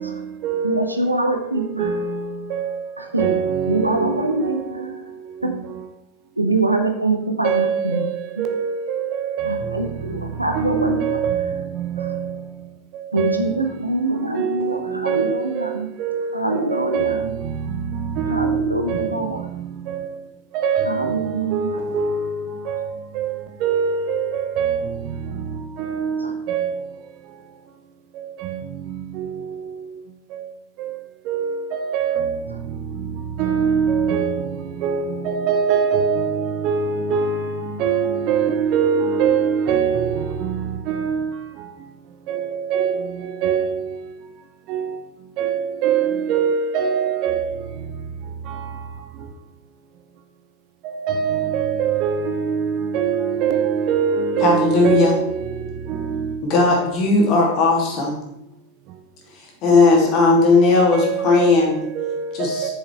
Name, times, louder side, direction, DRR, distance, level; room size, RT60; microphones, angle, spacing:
voice 1, 0.0-0.9 1.6-2.9 3.2-4.9 7.4-9.9 10.5-12.4 12.9-13.6 14.4-20.2 20.5-25.4 25.8-26.9 28.2-28.6 28.9-29.8 30.3-30.5 30.8-31.0 31.3-32.4 33.4-41.3 42.3-44.0 44.7-45.0 45.4-47.7 48.5-48.7 50.8-56.4 60.0-60.1 60.9-61.5 62.0-62.7, right 7 dB, 40° right, 0.8 m, -24 dB
voice 2, 0.6-1.9 3.0-3.3 3.7-4.9 5.4-5.5 6.4-8.0 9.4-11.2 13.1-15.9 16.3-17.3 18.3-19.5 20.9-21.8 26.2-26.3, right 2 dB, 85° right, 1.0 m, -24 dB
voice 3, 54.4-55.1 56.4-58.2 59.4-61.9 62.3-62.7, left 3 dB, 40° left, 2.7 m, -17 dB
7.8 x 6.9 x 4.6 m
figure-of-eight pair, 90°, 0 cm